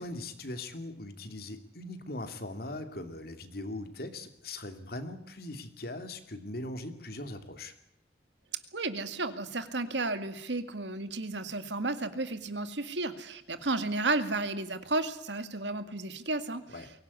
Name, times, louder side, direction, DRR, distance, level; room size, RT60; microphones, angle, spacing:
voice 1, 0.0-7.7 16.7-16.9, left 2 dB, 60° left, 8 dB, 2.7 m, -40 dB
voice 2, 8.7-16.6, right 2 dB, 85° right, 10 dB, 2.1 m, -33 dB
23.0 x 18.0 x 9.7 m, 0.71 s
head